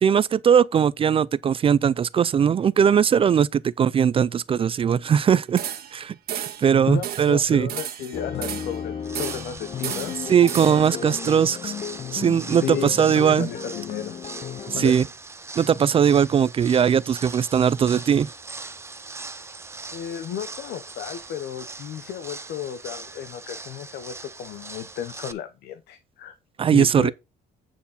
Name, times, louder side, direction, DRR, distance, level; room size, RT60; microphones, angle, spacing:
voice 1, 0.0-5.6 5.9-7.7 10.3-11.7 12.1-13.5 14.7-15.0 15.6-18.3 26.6-27.1, right 8 dB, 35° right, 0.4 m, -20 dB
sound 1, 5.6-6.0 6.3-6.7 7.0-7.3 7.7-8.8 9.1-9.5 9.8-10.9, right 10 dB, 65° right, 1.6 m, -33 dB
voice 2, 6.9-10.1 10.6-11.4 12.6-14.2 14.7-15.0 19.9-26.3 26.7-27.1, left 9 dB, 75° left, 1.0 m, -33 dB
sound 2, 8.1-14.9, left 7 dB, 40° left, 0.8 m, -34 dB
sound 3, 9.0-25.3, right 3 dB, 15° right, 0.8 m, -40 dB
9.2 x 4.6 x 5.5 m
cardioid pair, 110°, 17 cm